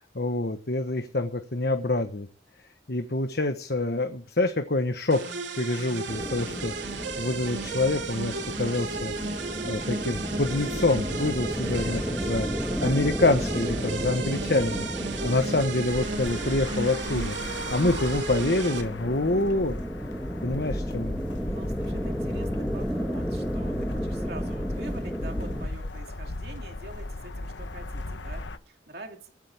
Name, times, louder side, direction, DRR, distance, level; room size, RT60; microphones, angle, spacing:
voice 1, 0.0-2.3 2.9-12.5 12.8-19.8 20.4-21.2, left 2 dB, 60° left, 7 dB, 1.3 m, -27 dB
sound 1, 5.1-18.8, right 4 dB, 85° right, 2.8 m, -34 dB
sound 2, 6.1-25.7, equal, ahead, 1.6 m, -33 dB
voice 2, 11.6-12.0 21.4-29.3, right 2 dB, 60° right, 3 dB, 2.7 m, -45 dB
sound 3, 15.9-28.6, left 2 dB, 90° left, 1.1 m, -36 dB
23.5 x 8.9 x 3.6 m, 0.43 s
head